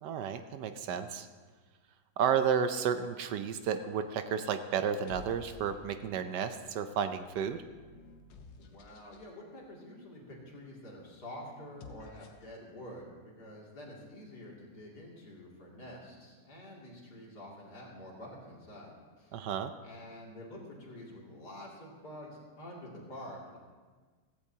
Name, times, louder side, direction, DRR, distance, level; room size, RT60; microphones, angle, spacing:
voice 1, 0.0-1.3 2.2-7.6 19.3-19.7, right 7 dB, 75° right, 9 dB, 1.2 m, -32 dB
sound 1, 3.6-4.0 4.8-6.2 6.9-9.3 11.6-12.6, left 3 dB, 80° left, 1.6 m, -53 dB
voice 2, 8.6-19.4 19.8-23.6, left 1 dB, 60° left, -4 dB, 3.1 m, -48 dB
16.0 x 15.0 x 2.8 m, 1.4 s
omnidirectional pair, 1.9 m